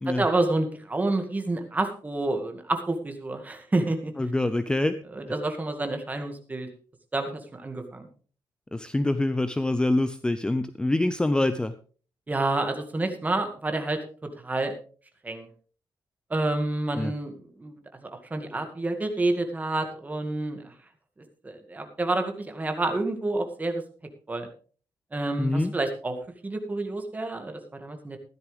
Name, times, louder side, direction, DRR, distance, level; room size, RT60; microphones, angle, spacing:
voice 1, 0.1-4.1 5.1-6.7 7.1-8.1 12.3-14.0 14.4-14.7 15.2-15.5 16.3-17.7 18.0-20.7 21.4-23.8 24.3-24.5 25.1-26.2 26.4-28.2, right 2 dB, 20° right, 5 dB, 2.1 m, -28 dB
voice 2, 4.2-5.0 8.7-11.7 17.0-17.1 25.4-25.7, left 2 dB, 10° left, 12 dB, 0.5 m, -25 dB
14.5 x 12.0 x 3.5 m, 0.40 s
wide cardioid pair, 135°, 8 cm